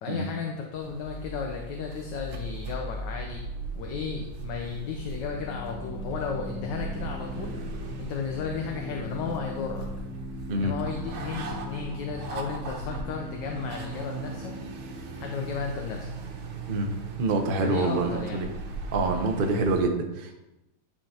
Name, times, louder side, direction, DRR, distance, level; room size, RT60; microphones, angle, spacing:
voice 1, 0.0-3.5 3.7-7.6 8.0-9.9 10.6-14.5 15.2-16.1 17.6-18.5, left 5 dB, 65° left, 1 dB, 1.3 m, -34 dB
sound 1, 0.7-19.8, right 3 dB, 85° right, 1.7 m, -38 dB
sound 2, 4.1-17.0, left 2 dB, 50° left, 1.4 m, -41 dB
voice 2, 16.7-18.5 18.9-20.3, right 2 dB, 65° right, 3 dB, 0.5 m, -26 dB
11.0 x 5.1 x 2.8 m, 0.95 s
omnidirectional pair, 2.2 m